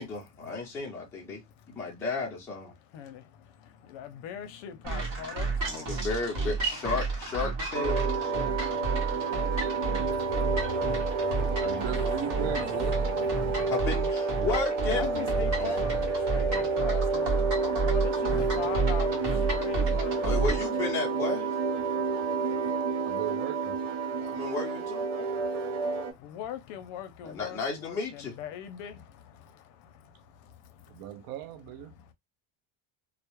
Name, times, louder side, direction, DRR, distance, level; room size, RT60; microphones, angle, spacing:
voice 1, 0.0-1.4 1.7-2.7 5.7-8.5 13.7-15.3 15.6-15.9 20.2-21.5 24.3-25.3 27.2-28.3, left 4 dB, 5° left, 0.4 m, -33 dB
voice 2, 1.3-2.0 2.8-6.1 6.5-7.6 7.9-13.8 14.9-20.6 20.9-21.4 21.8-23.2 24.0-24.5 25.1-31.3 31.9-32.1, left 9 dB, 70° left, 0.6 m, -43 dB
sound 1, 4.8-20.7, right 4 dB, 40° right, 0.8 m, -31 dB
sound 2, 7.7-26.1, right 4 dB, 85° right, 0.9 m, -30 dB
voice 3, 11.6-13.0 23.0-23.8 30.9-32.0, right 11 dB, 65° right, 0.5 m, -37 dB
2.2 x 2.0 x 2.9 m
cardioid pair, 175°, 47 cm